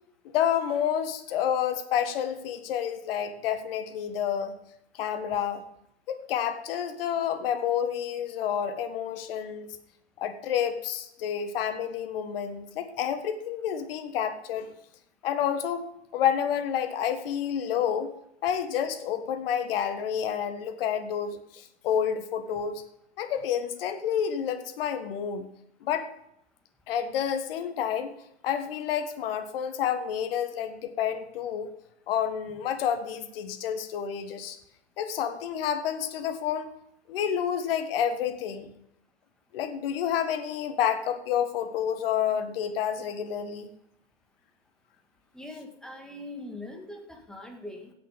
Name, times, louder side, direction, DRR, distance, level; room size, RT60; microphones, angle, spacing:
voice 1, 0.3-4.5 4.9-5.6 6.1-9.7 10.2-14.7 15.2-15.8 16.1-18.1 18.4-22.8 23.2-25.5 25.8-26.1 26.9-28.1 28.4-31.7 32.1-34.6 35.0-36.7 37.1-38.7 39.5-43.7, left 9 dB, 55° left, 9 dB, 1.6 m, -29 dB
voice 2, 45.3-47.9, left 1 dB, ahead, 3 dB, 2.0 m, -42 dB
16.5 x 6.9 x 5.2 m, 0.77 s
hypercardioid pair, 105°, 34 cm